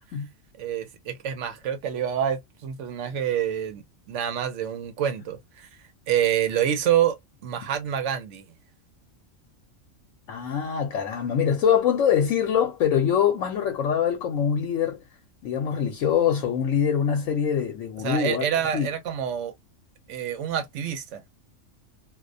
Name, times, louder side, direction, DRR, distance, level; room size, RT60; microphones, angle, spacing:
voice 1, 0.6-5.7 6.1-7.2 7.4-8.4 18.0-19.5 20.1-21.2, right 9 dB, 70° right, 0.9 m, -27 dB
voice 2, 10.3-15.0 15.4-18.5 18.7-18.9, left 8 dB, 80° left, 1.0 m, -24 dB
2.4 x 2.1 x 2.5 m
omnidirectional pair, 1.3 m